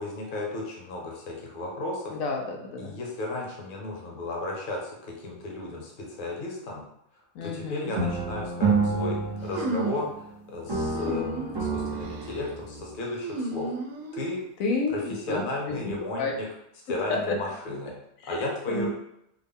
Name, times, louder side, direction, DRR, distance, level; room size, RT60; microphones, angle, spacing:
voice 1, 0.0-2.2 2.8-6.8 7.4-9.2 9.4-13.7 14.1-14.4 15.3-16.5 16.9-17.9 18.3-18.9, left 2 dB, 45° left, -1 dB, 0.8 m, -34 dB
voice 2, 2.1-3.0 7.3-7.9 14.6-16.3 17.1-17.4 18.2-18.9, left 3 dB, 90° left, 1 dB, 1.1 m, -30 dB
sound 1, 8.0-10.3 10.7-12.9, right 4 dB, 30° right, 0.5 m, -29 dB
sound 2, 9.5-10.1 10.9-11.6 12.0-12.4 13.2-14.4, right 2 dB, 85° right, 1.1 m, -33 dB
3.6 x 2.1 x 3.5 m, 0.79 s
omnidirectional pair, 1.4 m